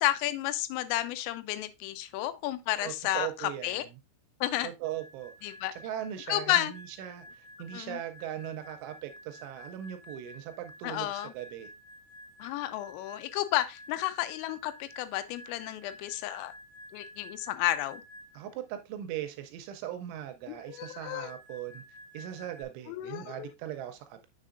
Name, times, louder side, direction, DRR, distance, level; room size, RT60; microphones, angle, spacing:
voice 1, 0.0-3.8 4.4-4.7 5.4-5.7 6.3-6.7 7.7-8.0 10.8-11.3 12.4-16.5 16.9-18.0 20.5-21.3 22.9-23.5, left 14 dB, 85° left, 3.2 m, -32 dB
voice 2, 2.8-3.8 4.6-11.7 18.3-21.8 22.1-24.3, right 11 dB, 80° right, 2.9 m, -39 dB
sound 1, 4.8-18.5 20.4-22.6, equal, 35° right, 1.6 m, -51 dB
7.3 x 6.6 x 2.5 m
omnidirectional pair, 5.8 m